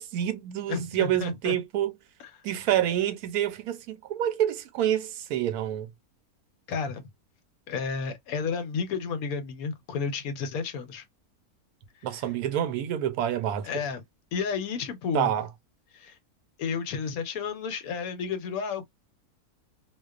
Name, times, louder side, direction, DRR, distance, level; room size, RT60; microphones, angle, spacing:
voice 1, 0.0-2.0 2.4-5.9 12.0-13.8 15.1-15.5, right 11 dB, 75° right, 1.1 m, -27 dB
voice 2, 0.7-1.6 2.2-2.3 6.7-7.0 7.7-11.0 12.1-12.2 13.6-14.0 14.3-15.3 15.9-16.2 16.6-18.9, left 5 dB, 75° left, 1.1 m, -32 dB
2.4 x 2.3 x 2.3 m
omnidirectional pair, 1.6 m